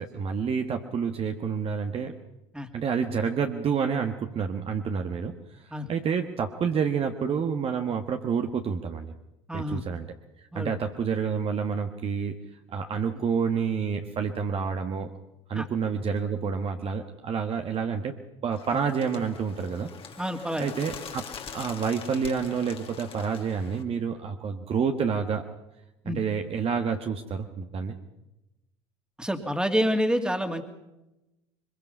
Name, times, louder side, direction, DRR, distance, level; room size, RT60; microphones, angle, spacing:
voice 1, 0.0-2.1 2.7-5.4 5.7-9.1 9.5-10.1 10.4-12.4 12.7-15.1 15.5-18.1 18.4-19.9 20.6-21.2 21.5-25.4 26.0-28.0, right 6 dB, 40° right, 5 dB, 1.5 m, -28 dB
voice 2, 9.5-9.8 10.5-10.7 15.5-15.7 20.2-20.7 26.0-26.2 29.2-30.6, equal, 5° right, 6 dB, 2.6 m, -27 dB
Bird, 18.5-23.8, left 6 dB, 35° left, 2.4 m, -43 dB
23.0 x 22.0 x 5.6 m, 0.93 s
hypercardioid pair, 70°, 16 cm